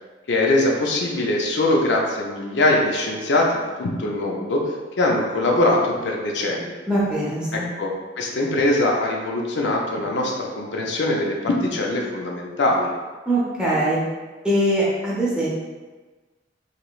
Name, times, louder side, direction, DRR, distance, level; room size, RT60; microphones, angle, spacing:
voice 1, 0.3-4.6 5.0-6.8 7.8-12.9, left 2 dB, 70° left, -1 dB, 0.5 m, -22 dB
voice 2, 6.9-7.7 13.3-14.0 14.4-15.5, right 1 dB, 5° right, -7 dB, 0.7 m, -22 dB
3.1 x 2.8 x 2.3 m, 1.3 s
head